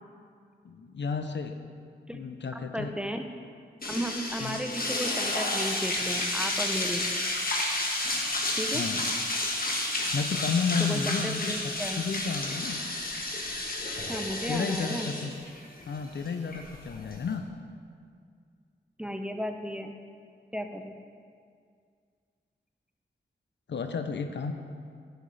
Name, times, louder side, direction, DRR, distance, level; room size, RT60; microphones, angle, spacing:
voice 1, 0.6-1.5 2.1-3.0 4.4-4.6 8.7-9.0 10.1-12.8 14.5-15.3 15.9-17.5 23.7-24.5, left 5 dB, 70° left, 7 dB, 0.6 m, -32 dB
voice 2, 2.5-3.3 3.9-7.0 8.6-8.8 10.8-12.0 14.1-15.1 19.0-19.9 20.5-21.0, equal, 5° right, 5 dB, 0.7 m, -34 dB
sound 1, 3.8-17.3, left 2 dB, 50° left, 1.3 m, -31 dB
11.0 x 6.4 x 3.3 m, 2.2 s
cardioid pair, 45°, 19 cm